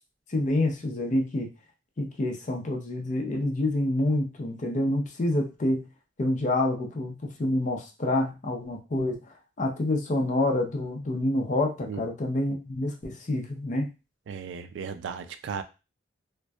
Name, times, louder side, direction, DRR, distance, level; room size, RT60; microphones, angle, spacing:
voice 1, 0.3-1.5 2.0-5.9 6.2-9.2 9.6-13.9, left 1 dB, 40° left, 2 dB, 0.5 m, -27 dB
voice 2, 14.3-15.6, right 6 dB, 80° right, 10 dB, 0.3 m, -35 dB
2.5 x 2.1 x 2.2 m, 0.29 s
head